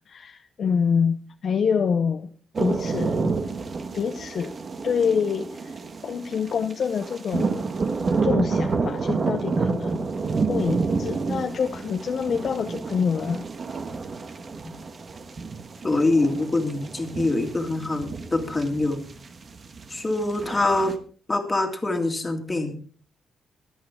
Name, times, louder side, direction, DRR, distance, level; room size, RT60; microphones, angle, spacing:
voice 1, 0.0-2.3 2.6-3.3 3.9-4.5 4.8-5.7 6.0-7.7 8.2-10.1 10.5-13.5, left 6 dB, 40° left, 0.6 m, -26 dB
sound 1, 2.5-21.0, right 4 dB, 30° right, 1.2 m, -29 dB
voice 2, 15.8-19.0 19.9-20.9 21.3-22.8, left 2 dB, 15° left, 2.1 m, -24 dB
23.0 x 8.4 x 3.6 m
cardioid pair, 170°, 0 cm